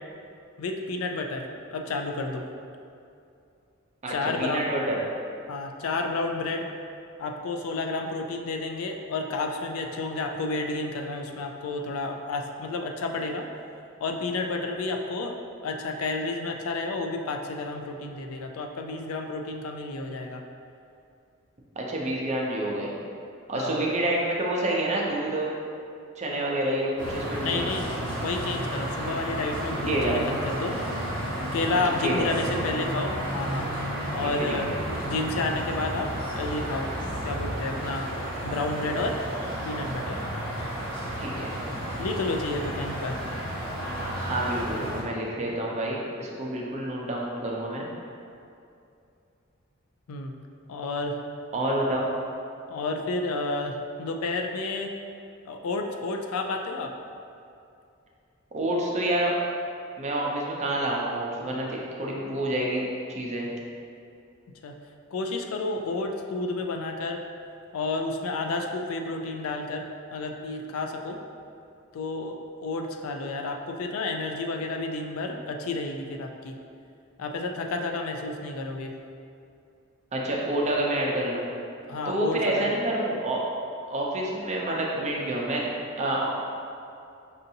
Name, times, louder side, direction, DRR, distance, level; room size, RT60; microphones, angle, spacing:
voice 1, 0.6-2.5 4.1-4.6 5.5-6.7 7.2-13.5 14.0-15.3 15.6-20.4 23.6-23.8 27.3-30.8 31.5-33.7 34.1-36.9 37.2-38.1 38.4-39.2 39.6-40.2 42.0-43.2 50.1-50.3 50.7-51.2 52.7-54.9 55.5-56.9 64.6-64.7 65.1-67.2 67.7-69.9 70.1-71.2 71.9-76.6 77.2-79.0 81.9-82.7, left 3 dB, 75° left, 3 dB, 0.4 m, -31 dB
voice 2, 4.0-5.0 21.8-22.9 23.5-25.5 26.2-27.6 29.9-30.2 32.0-32.6 34.2-34.8 41.2-41.5 44.3-47.9 51.5-52.1 58.5-59.3 60.0-63.5 80.1-81.5 82.1-83.4 83.9-85.7 86.0-86.3, right 1 dB, 35° right, -3 dB, 0.5 m, -28 dB
sound 1, 27.0-45.0, equal, 20° left, 1.3 m, -32 dB
5.4 x 2.6 x 2.7 m, 2.5 s
head